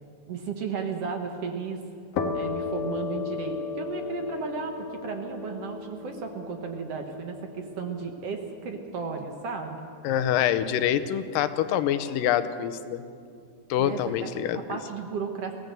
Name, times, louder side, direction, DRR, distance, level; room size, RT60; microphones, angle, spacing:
voice 1, 0.3-1.8 2.3-9.9 13.8-15.5, right 5 dB, 60° right, 4 dB, 1.9 m, -34 dB
sound 1, 2.1-9.6, left 5 dB, 65° left, 2.6 m, -35 dB
voice 2, 10.0-13.0 13.7-14.8, left 10 dB, 90° left, 12 dB, 2.5 m, -26 dB
23.5 x 16.5 x 6.8 m, 2.4 s
omnidirectional pair, 3.9 m